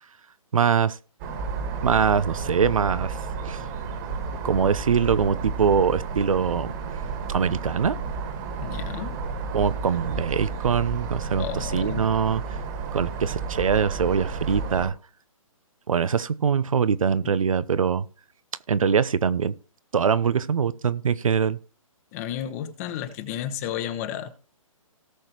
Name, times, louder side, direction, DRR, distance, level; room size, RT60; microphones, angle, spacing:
voice 1, 0.5-1.0 1.8-3.2 3.4-3.6 4.4-6.7 7.3-8.0 9.5-12.4 12.9-14.9 15.9-18.0 18.7-19.5 19.9-21.6, right 6 dB, 70° right, 0.8 m, -23 dB
sound 1, 1.2-14.9, right 4 dB, 30° right, 1.9 m, -32 dB
voice 2, 8.6-9.2 11.4-12.1 17.2-17.3 22.1-24.5, left 10 dB, 25° left, 1.1 m, -32 dB
18.0 x 6.5 x 3.0 m
hypercardioid pair, 145°, 18 cm